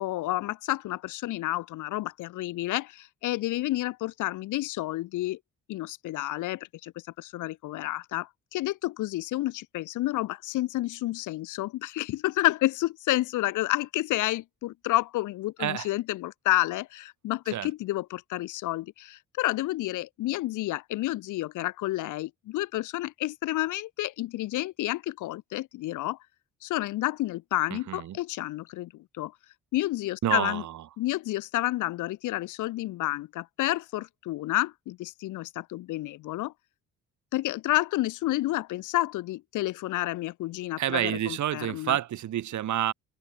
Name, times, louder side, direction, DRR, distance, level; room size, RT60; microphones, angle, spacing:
voice 1, 0.0-5.4 5.7-6.9 7.2-26.2 26.6-29.3 29.7-30.6 31.0-36.5 37.3-42.0, left 16 dB, 80° left, 0.9 m, -30 dB
voice 2, 27.7-28.2 30.2-30.8 40.8-42.9, right 12 dB, 75° right, 4.3 m, -29 dB
open air
cardioid pair, 90°, 30 cm